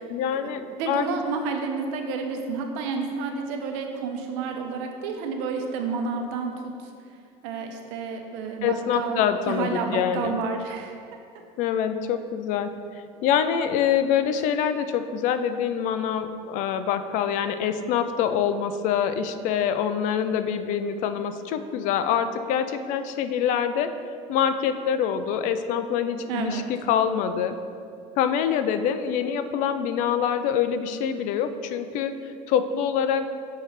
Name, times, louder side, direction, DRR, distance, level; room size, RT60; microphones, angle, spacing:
voice 1, 0.0-1.1 8.6-10.4 11.6-12.7 13.2-23.9 24.3-27.6 28.2-33.3, left 8 dB, 60° left, 10 dB, 0.4 m, -25 dB
voice 2, 0.7-6.9 7.4-11.0 26.3-26.7, right 4 dB, 90° right, 4 dB, 0.8 m, -30 dB
6.5 x 3.2 x 5.6 m, 2.4 s
cardioid pair, 145°, 15 cm